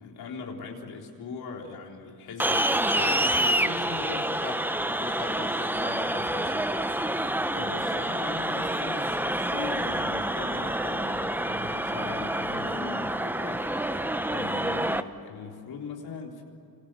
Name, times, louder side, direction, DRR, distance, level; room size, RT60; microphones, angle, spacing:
voice 1, 0.0-4.3 7.5-14.0 14.3-16.4, left 5 dB, 80° left, 0 dB, 4.0 m, -40 dB
sound 1, 2.4-15.0, right 1 dB, 5° right, 0.9 m, -28 dB
voice 2, 3.6-4.6 5.0-6.7, left 4 dB, 25° left, 4 dB, 1.9 m, -41 dB
29.0 x 25.5 x 7.8 m, 2.6 s
cardioid pair, 105°, 37 cm